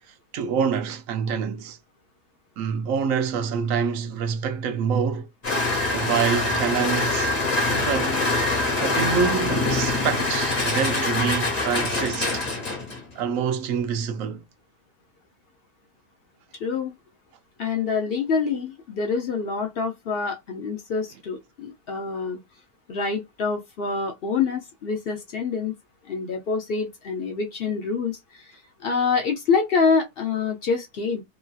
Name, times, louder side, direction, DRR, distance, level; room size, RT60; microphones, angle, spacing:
voice 1, 0.3-1.8 2.6-5.3 5.9-7.3 7.7-8.2 8.8-12.4 13.2-14.4, right 6 dB, 70° right, 0.8 m, -26 dB
sound 1, 5.4-13.1, left 2 dB, 25° left, 1.2 m, -24 dB
voice 2, 16.6-16.9 17.6-22.4 22.9-25.7 26.1-28.4 28.8-31.2, left 5 dB, 65° left, 0.5 m, -26 dB
3.0 x 2.6 x 2.3 m
omnidirectional pair, 1.7 m